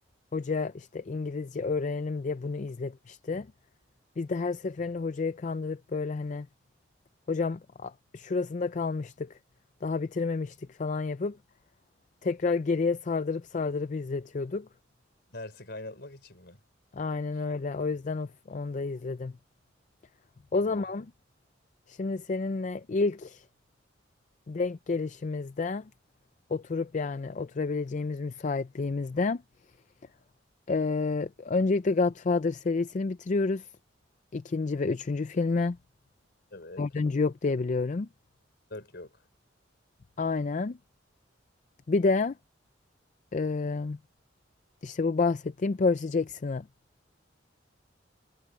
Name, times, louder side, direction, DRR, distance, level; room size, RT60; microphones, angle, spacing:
voice 1, 0.3-3.5 4.2-6.5 7.3-9.4 9.8-11.4 12.2-14.7 16.9-19.3 20.5-21.1 21.9-23.5 24.5-25.9 26.5-29.4 30.7-33.7 34.3-35.8 36.8-38.1 40.2-40.8 41.9-42.4 43.3-44.0 44.8-46.7, left 4 dB, 40° left, 0.4 m, -29 dB
voice 2, 15.3-16.6 20.6-20.8 36.5-36.9 38.7-39.2, left 2 dB, 60° left, 4.8 m, -43 dB
head